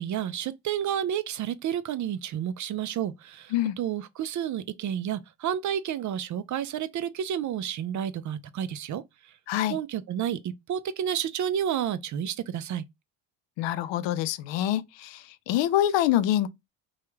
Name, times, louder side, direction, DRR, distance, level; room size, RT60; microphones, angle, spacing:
voice 1, 0.0-9.0 9.7-12.8, right 9 dB, 40° right, 0.4 m, -30 dB
voice 2, 13.6-16.5, left 12 dB, 65° left, 0.6 m, -26 dB
3.0 x 2.3 x 3.2 m
supercardioid pair, 75°, 48 cm